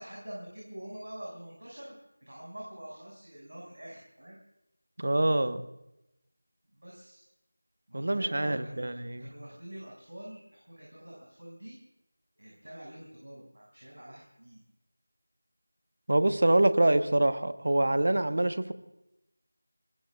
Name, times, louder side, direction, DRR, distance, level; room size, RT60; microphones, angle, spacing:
voice 1, 0.0-1.9 2.2-4.4 6.8-7.2 7.9-11.8 12.4-14.6, right 1 dB, 75° right, -3 dB, 6.3 m, -46 dB
voice 2, 5.0-5.6 7.9-9.3 16.1-18.7, right 1 dB, 60° right, 10 dB, 1.2 m, -25 dB
25.5 x 20.5 x 2.4 m, 0.91 s
figure-of-eight pair, 170°, 0 cm